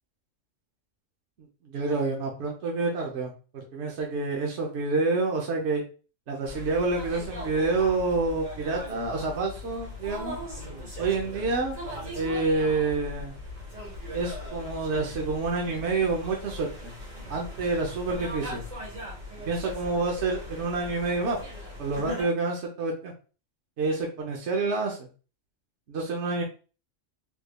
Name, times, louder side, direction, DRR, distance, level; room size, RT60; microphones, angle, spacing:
voice 1, 1.6-5.8 6.3-10.4 11.0-11.8 12.1-13.3 14.1-16.9 17.3-18.6 19.4-21.4 21.8-23.1 23.8-25.1 25.9-26.4, right 3 dB, 65° right, 0 dB, 1.0 m, -28 dB
sound 1, 6.4-22.2, left 1 dB, 85° right, 2.1 m, -39 dB
3.6 x 3.1 x 2.3 m, 0.36 s
omnidirectional pair, 1.3 m